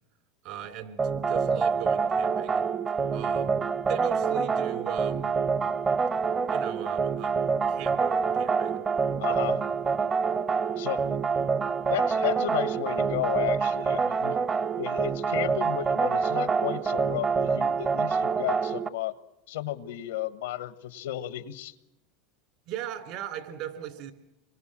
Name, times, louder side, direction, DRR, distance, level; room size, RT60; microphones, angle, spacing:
voice 1, 0.4-2.6 3.1-3.6 3.9-5.3 6.5-8.8 9.3-9.5 22.7-24.1, right 10 dB, 60° right, 9 dB, 3.1 m, -38 dB
sound 1, 1.0-18.9, right 5 dB, 25° right, 0.8 m, -26 dB
voice 2, 9.2-9.6 10.8-11.2 11.9-14.4 14.8-19.1 19.5-21.7, left 13 dB, 85° left, 14 dB, 1.2 m, -33 dB
27.0 x 23.5 x 7.5 m, 0.88 s
supercardioid pair, 115°, 0 cm